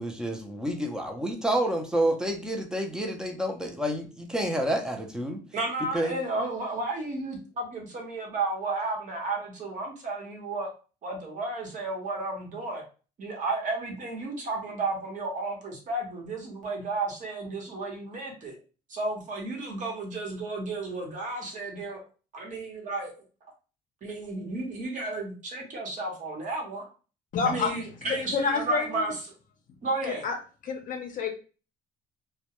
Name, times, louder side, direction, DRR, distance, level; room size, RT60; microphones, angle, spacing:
voice 1, 0.0-5.4 5.9-6.2, right 1 dB, 5° right, 3 dB, 0.5 m, -29 dB
voice 2, 5.5-10.7 11.0-12.8 13.2-18.5 18.9-22.0 22.3-23.1 24.0-26.8 27.4-29.2 29.8-30.2, right 2 dB, 50° right, 0 dB, 1.0 m, -33 dB
voice 3, 27.3-29.1 30.2-30.3 30.6-31.3, left 5 dB, 50° left, 3 dB, 0.6 m, -29 dB
2.2 x 2.2 x 2.9 m, 0.34 s
cardioid pair, 110°, 17 cm